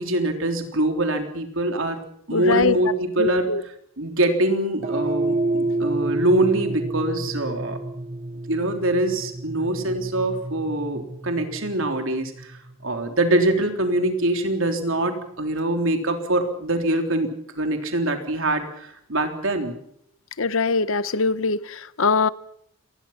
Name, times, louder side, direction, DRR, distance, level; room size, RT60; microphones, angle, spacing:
voice 1, 0.0-2.0 2.3-3.5 4.0-7.8 8.5-17.3 17.5-19.8, right 1 dB, 65° right, 3.6 m, -24 dB
voice 2, 2.3-2.8 3.2-3.6 20.4-22.3, left 4 dB, 65° left, 0.9 m, -22 dB
sound 1, 4.8-13.3, right 2 dB, 30° right, 1.4 m, -29 dB
28.0 x 20.5 x 5.9 m
head